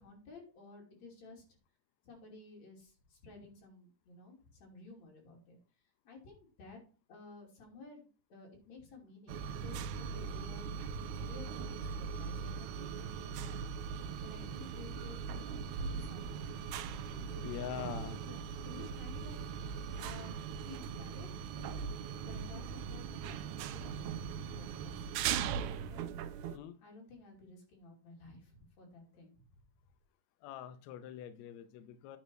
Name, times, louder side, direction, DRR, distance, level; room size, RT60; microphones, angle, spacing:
voice 1, 0.0-1.4 2.0-5.6 6.0-6.8 7.1-10.7 11.2-13.6 14.2-15.5 15.8-16.5 17.1-17.4 18.2-20.4 20.6-21.3 21.5-26.1 26.3-29.5, left 3 dB, 55° left, -1 dB, 4.0 m, -54 dB
sound 1, 9.3-26.6, right 7 dB, 80° right, 1.9 m, -40 dB
voice 2, 17.4-18.2 26.4-26.8 30.4-32.2, left 9 dB, 75° left, 10 dB, 1.7 m, -44 dB
9.5 x 4.3 x 6.2 m, 0.36 s
omnidirectional pair, 3.7 m